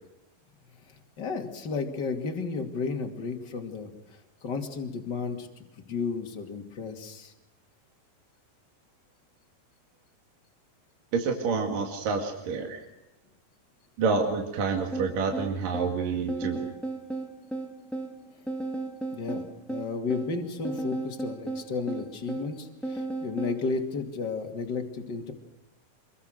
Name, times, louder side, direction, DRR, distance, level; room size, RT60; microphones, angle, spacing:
voice 1, 0.9-7.3 19.1-25.3, left 4 dB, 30° left, 4 dB, 2.7 m, -33 dB
voice 2, 11.1-12.8 14.0-16.7, right 5 dB, 65° right, 3 dB, 3.8 m, -28 dB
sound 1, 14.9-23.6, right 2 dB, ahead, 1.0 m, -35 dB
26.5 x 23.0 x 6.6 m, 0.93 s
omnidirectional pair, 4.4 m